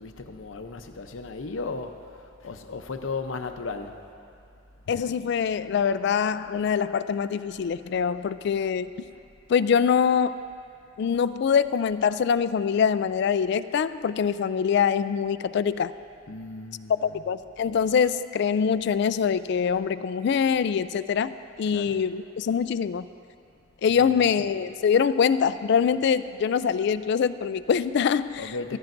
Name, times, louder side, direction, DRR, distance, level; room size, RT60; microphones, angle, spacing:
voice 1, 0.0-4.0 16.3-17.3 21.7-22.0 23.9-24.5 28.3-28.8, left 3 dB, 75° left, 6 dB, 0.7 m, -36 dB
voice 2, 4.9-9.0 9.5-10.4 11.0-15.9 17.0-21.3 21.6-23.1 23.8-28.8, left 7 dB, 60° left, 13 dB, 0.3 m, -24 dB
15.0 x 14.5 x 2.6 m, 2.5 s
head